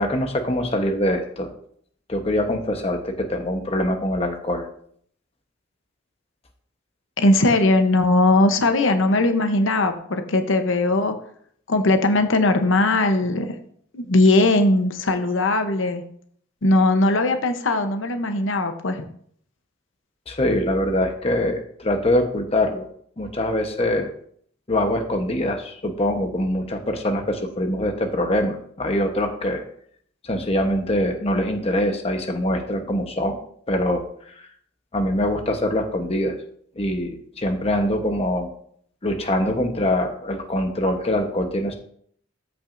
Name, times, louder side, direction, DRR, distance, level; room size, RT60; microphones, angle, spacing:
voice 1, 0.0-1.5 2.1-4.7 20.3-22.8 23.2-24.1 24.7-29.6 30.2-33.4 33.7-34.0 34.9-36.3 36.8-38.5 39.0-41.8, left 1 dB, 30° left, 4 dB, 1.0 m, -23 dB
voice 2, 7.2-11.1 11.7-13.5 13.9-16.0 16.6-19.0, left 2 dB, 85° left, 6 dB, 0.8 m, -19 dB
13.5 x 6.0 x 2.6 m, 0.62 s
head